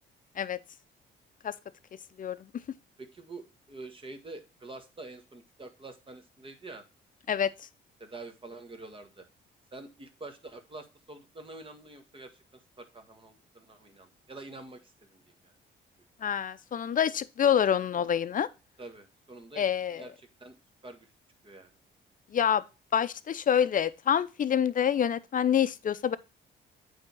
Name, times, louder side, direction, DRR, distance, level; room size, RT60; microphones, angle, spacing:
voice 1, 3.0-6.8 8.0-9.3 9.7-15.5 18.8-21.1 21.4-21.8, right 2 dB, 25° right, 1.6 m, -47 dB
voice 2, 7.3-7.7 16.2-18.5 19.6-20.0 22.3-22.6 22.9-26.2, left 8 dB, 45° left, 0.6 m, -26 dB
8.8 x 3.6 x 6.0 m
cardioid pair, 90°, 20 cm